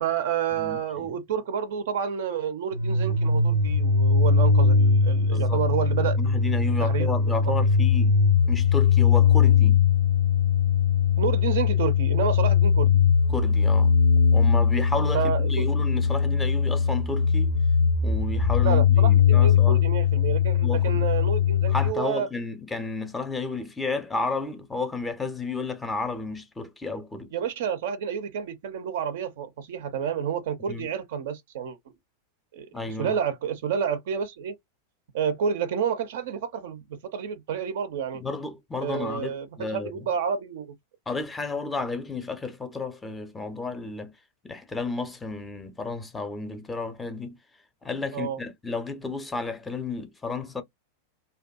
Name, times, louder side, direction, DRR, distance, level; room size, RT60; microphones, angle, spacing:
voice 1, 0.0-6.2 6.8-7.1 11.2-13.0 15.1-15.6 18.6-22.3 27.3-31.8 32.5-32.7 33.0-34.5 35.1-38.2 38.8-40.7 48.1-48.4, right 8 dB, 55° right, 0.4 m, -29 dB
voice 2, 0.6-1.2 5.3-5.6 6.0-8.2 8.5-9.8 13.3-13.9 14.3-17.5 18.0-19.8 20.6-21.1 21.7-27.3 30.7-30.9 32.7-33.2 38.1-40.1 41.1-44.1 44.4-47.4 47.8-50.6, left 3 dB, 10° left, 0.5 m, -32 dB
sound 1, 2.7-21.9, left 6 dB, 75° left, 0.5 m, -21 dB
2.6 x 2.2 x 2.3 m
figure-of-eight pair, 90°, 0 cm